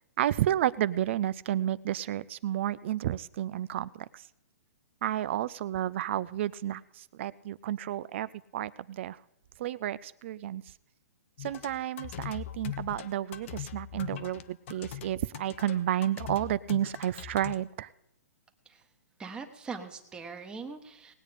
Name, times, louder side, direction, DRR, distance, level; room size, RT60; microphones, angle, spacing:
voice 1, 0.2-4.2 5.0-9.2 9.6-10.6 11.4-17.9, right 12 dB, 45° right, 18 dB, 0.4 m, -31 dB
sound 1, 11.4-17.5, left 12 dB, 50° left, 0.9 m, -41 dB
voice 2, 19.2-21.1, right 4 dB, 10° right, 5 dB, 1.2 m, -41 dB
19.0 x 8.3 x 5.1 m, 0.84 s
hypercardioid pair, 150°, 9 cm